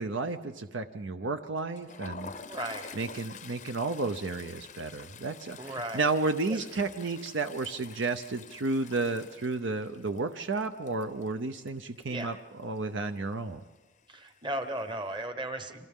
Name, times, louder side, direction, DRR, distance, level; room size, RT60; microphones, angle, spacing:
voice 1, 0.0-2.3 3.0-13.6, right 3 dB, 60° right, 8 dB, 0.6 m, -32 dB
Toilet flush, 1.6-12.3 12.6-12.9 13.2-13.3 14.3-14.8, left 5 dB, 35° left, 0.6 m, -48 dB
voice 2, 2.4-3.0 5.6-6.0 6.5-6.6 12.1-12.3 14.1-15.9, right 1 dB, 20° right, 8 dB, 1.2 m, -36 dB
29.5 x 25.5 x 3.7 m, 1.2 s
head